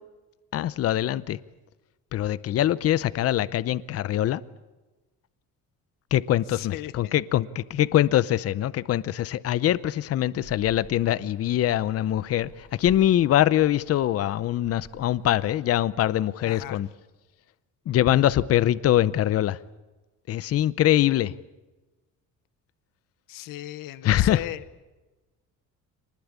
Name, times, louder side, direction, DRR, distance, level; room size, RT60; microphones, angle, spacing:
voice 1, 0.5-1.4 2.1-4.4 6.1-16.9 17.9-19.6 20.3-21.3 24.0-24.4, left 12 dB, 45° left, 0.7 m, -23 dB
voice 2, 6.5-7.2 16.4-16.8 23.3-24.6, left 15 dB, 75° left, 1.0 m, -37 dB
sound 1, 10.4-15.6, equal, 5° left, 3.2 m, -50 dB
26.5 x 20.0 x 8.5 m
cardioid pair, 170°, 33 cm